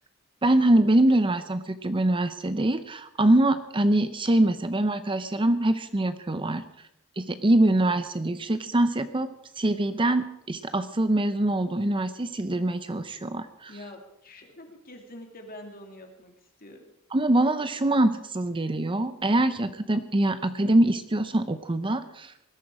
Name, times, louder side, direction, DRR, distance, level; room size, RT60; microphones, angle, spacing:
voice 1, 0.4-6.6 7.2-13.7 17.1-22.3, right 1 dB, 25° right, 11 dB, 0.6 m, -24 dB
voice 2, 13.7-16.3 16.6-16.8, left 1 dB, 40° left, 3 dB, 2.7 m, -45 dB
20.0 x 13.0 x 4.9 m, 0.80 s
head